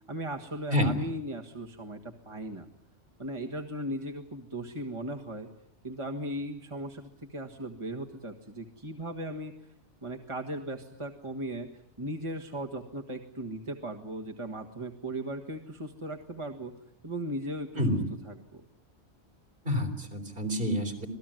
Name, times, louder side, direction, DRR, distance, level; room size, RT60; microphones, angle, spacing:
voice 1, 0.1-2.7 3.2-5.5 5.8-9.5 10.0-11.7 12.0-16.7 17.0-18.0 18.2-18.6, right 1 dB, 25° right, 2 dB, 1.8 m, -37 dB
voice 2, 19.7-21.1, left 1 dB, 50° right, 9 dB, 4.3 m, -28 dB
27.0 x 18.5 x 9.2 m, 0.69 s
omnidirectional pair, 1.2 m